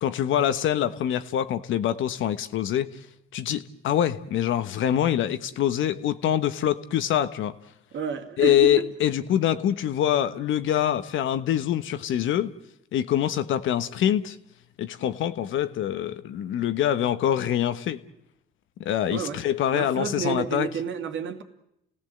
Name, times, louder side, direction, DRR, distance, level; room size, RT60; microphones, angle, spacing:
voice 1, 0.0-2.9 3.3-7.5 8.4-12.5 12.9-14.4 14.8-18.0 18.8-20.7, left 11 dB, 80° left, 1.2 m, -25 dB
voice 2, 7.9-8.9 19.1-19.4 19.7-21.4, right 7 dB, 75° right, 2.3 m, -30 dB
30.0 x 17.5 x 7.9 m
cardioid pair, 90°, 20 cm